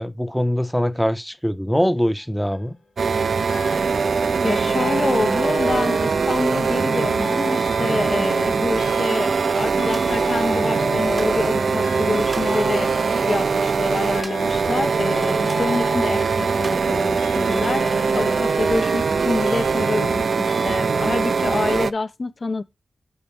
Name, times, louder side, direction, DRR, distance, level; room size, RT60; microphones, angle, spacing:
voice 1, 0.0-2.8, equal, ahead, 0.6 m, -22 dB
sound 1, 2.2-2.7 3.5-4.1 4.5-20.2 20.5-20.8, left 2 dB, 75° left, 1.2 m, -35 dB
sound 2, 3.0-21.9, right 5 dB, 75° right, 0.3 m, -22 dB
voice 2, 4.4-22.6, left 3 dB, 45° left, 0.4 m, -27 dB
sound 3, 9.9-10.2 11.2-11.4 12.3-12.6 14.2-14.6 14.9-15.0 15.5-15.7 16.6-16.9, right 3 dB, 45° right, 0.7 m, -39 dB
6.9 x 5.1 x 3.4 m
wide cardioid pair, 110°, 0 cm